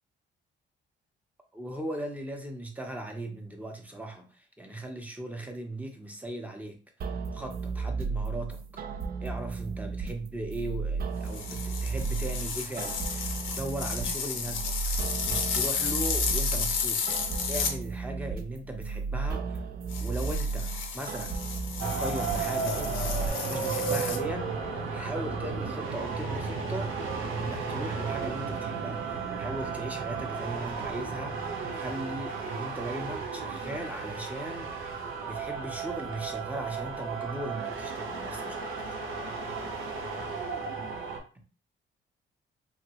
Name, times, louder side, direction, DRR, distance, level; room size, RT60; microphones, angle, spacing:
voice 1, 1.5-6.8 7.1-8.8 9.2-14.8 15.0-19.6 20.0-21.5 21.8-23.2 23.5-26.9 27.3-34.9 35.2-38.9, right 1 dB, 5° right, 3 dB, 0.7 m, -38 dB
sound 1, 7.0-23.3, right 4 dB, 50° right, 0.4 m, -34 dB
sound 2, 11.3-17.8 19.9-24.2, left 6 dB, 85° left, 0.7 m, -33 dB
sound 3, 21.8-41.2, right 5 dB, 85° right, 0.8 m, -34 dB
2.9 x 2.6 x 3.0 m, 0.37 s
cardioid pair, 90°, 20 cm